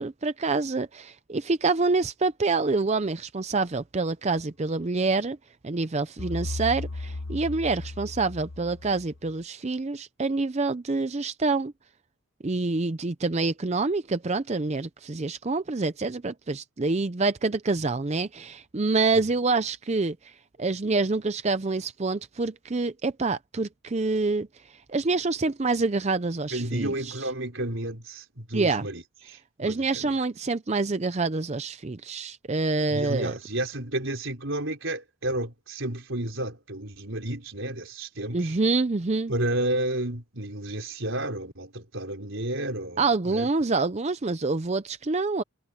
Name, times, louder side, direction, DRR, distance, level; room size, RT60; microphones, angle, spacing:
voice 1, 0.0-5.4 5.6-11.7 12.4-20.2 20.6-24.5 24.9-27.1 28.5-28.8 29.6-33.3 38.3-39.3 43.0-45.4, right 3 dB, 30° right, 0.5 m, -26 dB
sound 1, 6.2-9.3, left 2 dB, 55° left, 1.0 m, -35 dB
voice 2, 26.5-30.1 32.9-38.6 39.3-43.5, right 1 dB, 60° right, 4.8 m, -31 dB
head